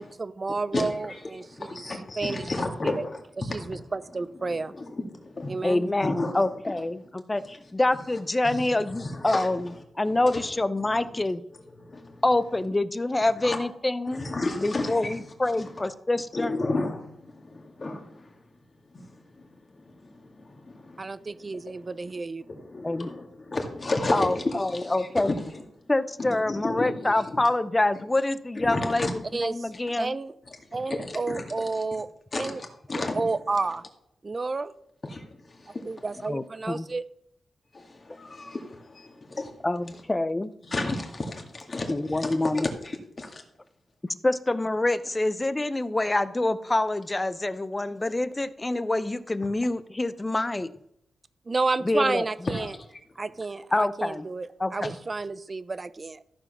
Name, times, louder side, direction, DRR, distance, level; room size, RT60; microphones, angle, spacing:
voice 1, 0.0-1.4 2.2-2.4 2.8-2.9 3.5-4.7 5.5-5.8 21.0-22.4 29.3-29.7 30.0-30.3 30.7-32.1 32.4-32.6 33.1-33.8 34.2-34.7 35.9-37.0 51.5-52.7 53.2-56.2, right 3 dB, 35° right, 16 dB, 0.5 m, -30 dB
voice 2, 0.7-3.8 4.2-7.1 7.4-12.3 13.2-13.6 14.1-15.9 16.3-25.9 26.2-27.4 27.9-28.1 28.5-29.3 30.5-32.0 32.3-33.4 35.0-36.1 37.7-40.0 40.6-43.4 49.4-49.5 52.4-53.3 54.8-54.9, left 2 dB, 40° left, 3 dB, 2.1 m, -34 dB
voice 3, 5.6-9.6 10.0-11.4 12.2-14.3 14.6-15.1 15.4-16.5 22.8-23.1 24.1-24.3 24.6-25.3 25.9-29.1 29.5-30.2 36.3-36.9 39.6-40.5 41.9-42.7 44.2-50.7 51.8-52.2 53.7-54.3 54.6-54.9, left 2 dB, 20° left, 14 dB, 0.6 m, -26 dB
14.0 x 4.8 x 6.0 m, 0.74 s
cardioid pair, 85°, 0 cm